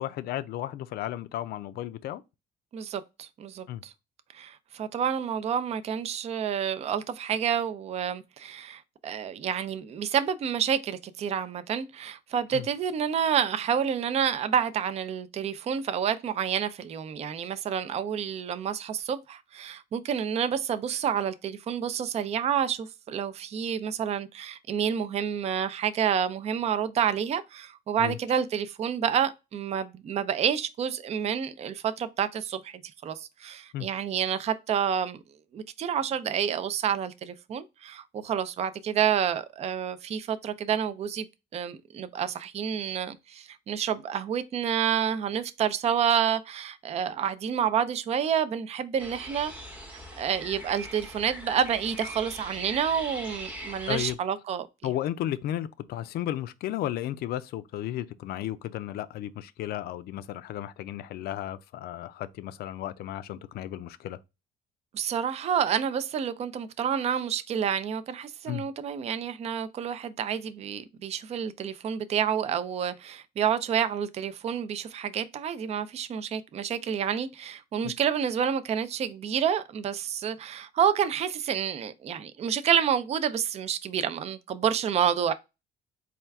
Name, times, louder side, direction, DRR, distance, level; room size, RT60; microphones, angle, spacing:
voice 1, 0.0-2.2 3.7-3.8 12.5-12.7 28.0-28.2 33.7-33.9 53.9-54.2 54.8-64.2 68.5-68.7 77.8-77.9, left 12 dB, 65° left, 0.4 m, -34 dB
voice 2, 2.7-3.9 4.3-32.7 33.0-35.2 35.5-41.3 41.5-49.5 50.2-54.9 64.9-85.3, right 8 dB, 40° right, 0.4 m, -29 dB
sound 1, 49.0-54.1, equal, 10° right, 0.8 m, -41 dB
4.3 x 2.3 x 3.4 m
cardioid pair, 110°, 17 cm